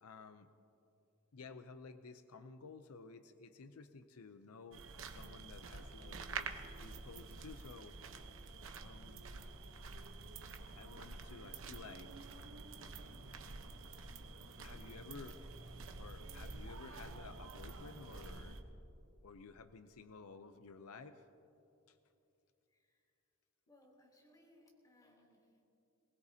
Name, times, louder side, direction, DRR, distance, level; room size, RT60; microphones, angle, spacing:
voice 1, 0.0-0.5 1.3-4.8 5.1-8.0 8.8-9.3 10.8-12.3 14.6-15.4 16.0-18.6 19.2-21.2 21.9-22.0, left 4 dB, 90° left, 10 dB, 0.6 m, -54 dB
sound 1, 4.7-18.6, right 4 dB, 65° right, 1.0 m, -48 dB
voice 2, 22.7-23.0 23.7-25.6, left 1 dB, 15° left, -2 dB, 3.2 m, -66 dB
22.0 x 19.5 x 2.8 m, 2.8 s
head